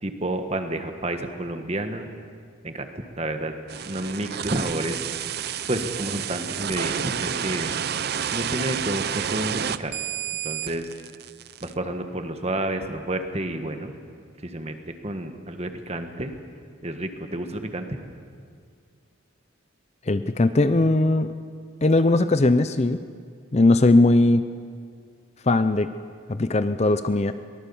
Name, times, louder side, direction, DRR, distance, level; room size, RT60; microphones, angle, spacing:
voice 1, 0.0-2.1 2.6-2.9 3.2-3.5 3.8-5.0 5.7-7.7 8.3-10.0 10.4-10.9 11.6-13.9 14.4-16.3 16.8-18.0, right 1 dB, 30° right, 6 dB, 1.5 m, -30 dB
ps electric, 3.7-11.7, right 8 dB, 50° right, 0.5 m, -30 dB
voice 2, 20.1-21.3 21.8-23.0 23.5-24.4 25.4-25.9 26.3-27.3, left 2 dB, 30° left, 11 dB, 0.5 m, -19 dB
23.0 x 19.0 x 7.1 m, 2.1 s
head